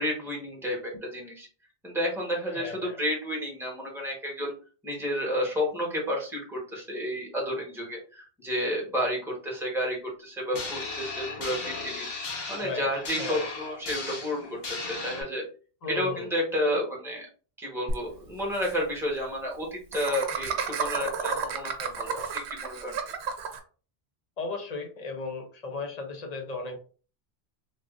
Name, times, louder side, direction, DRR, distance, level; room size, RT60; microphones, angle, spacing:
voice 1, 0.0-1.5 1.8-4.5 4.8-15.4 15.9-17.3 17.6-23.1, equal, ahead, -2 dB, 1.0 m, -31 dB
voice 2, 2.5-3.0 12.6-12.9 13.2-13.5 15.8-16.3 24.4-26.8, left 4 dB, 45° left, 5 dB, 0.6 m, -35 dB
sound 1, 10.5-15.2, left 3 dB, 65° left, 1.0 m, -36 dB
Laughter, 17.9-18.0 18.2-18.3 18.5-18.7 19.9-23.6, right 6 dB, 85° right, 0.8 m, -31 dB
3.4 x 2.5 x 2.4 m, 0.38 s
omnidirectional pair, 1.1 m